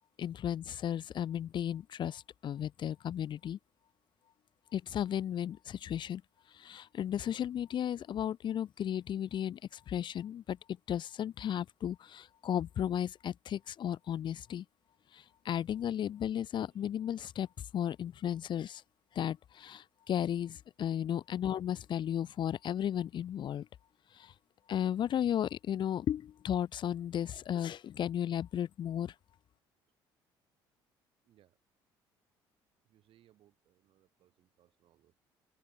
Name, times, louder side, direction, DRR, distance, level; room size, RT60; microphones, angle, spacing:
voice 1, 0.2-3.6 4.7-6.2 6.5-10.6 10.9-14.6 15.1-17.5 17.7-18.8 19.1-23.7 24.1-24.3 24.7-29.1, left 10 dB, 50° left, 0.7 m, -34 dB
voice 2, 31.2-31.6 32.8-35.1, right 12 dB, 65° right, 6.1 m, -68 dB
open air
supercardioid pair, 80°, 10 cm